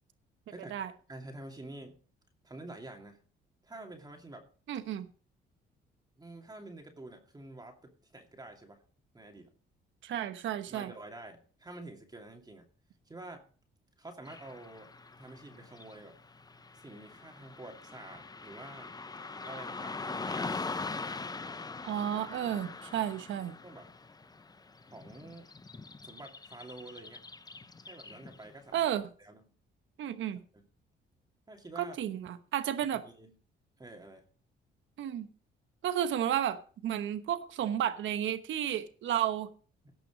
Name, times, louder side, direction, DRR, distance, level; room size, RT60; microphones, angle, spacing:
voice 1, 1.1-2.0 2.4-3.2 3.6-4.5 6.2-8.8 9.1-9.5 10.7-12.6 13.1-13.4 14.0-14.9 15.2-16.1 16.7-18.9 19.4-20.6 22.7-22.8 23.6-23.9 24.9-25.5 26.0-27.2 27.8-28.9 29.2-29.4 30.5-30.6 31.5-32.0 32.9-33.4 33.8-34.2 39.8-39.9, right 2 dB, 20° right, 3 dB, 2.5 m, -48 dB
voice 2, 4.7-5.1 10.0-10.9 21.8-23.5 28.7-29.0 30.0-30.4 31.8-33.0 35.0-35.3 35.8-39.5, right 10 dB, 75° right, 11 dB, 1.1 m, -32 dB
Car passing by / Traffic noise roadway noise, 14.2-28.5, left 3 dB, 20° left, 0.7 m, -42 dB
17.5 x 6.0 x 5.0 m, 0.41 s
cardioid pair, 90°, 20 cm